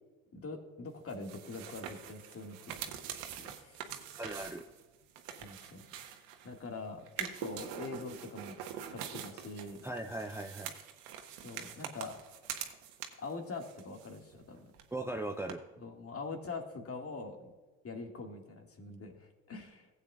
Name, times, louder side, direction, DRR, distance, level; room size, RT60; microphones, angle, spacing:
voice 1, 0.3-4.0 5.4-6.1 6.4-8.6 8.9-9.8 11.4-12.2 13.2-14.7 15.8-17.5 17.8-19.9, left 3 dB, 35° left, 3 dB, 2.0 m, -44 dB
sound 1, 1.1-6.6 7.1-13.3 13.6-14.5 14.7-14.8 15.5-15.6, right 9 dB, 75° right, 1.2 m, -44 dB
voice 2, 4.2-4.6 9.8-10.7 14.9-15.6, right 2 dB, 5° right, 4 dB, 0.7 m, -38 dB
16.0 x 8.3 x 2.4 m, 1.3 s
hypercardioid pair, 65°, 40 cm